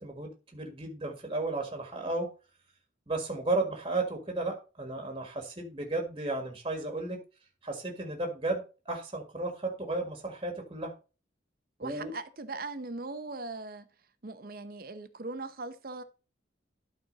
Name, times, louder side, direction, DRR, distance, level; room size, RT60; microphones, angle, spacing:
voice 1, 0.0-2.3 3.1-7.2 7.6-10.9 11.8-12.1, right 2 dB, 25° right, 1.6 m, -34 dB
voice 2, 11.8-13.9 14.2-16.0, right 3 dB, 50° right, 0.8 m, -39 dB
12.0 x 4.3 x 3.9 m
head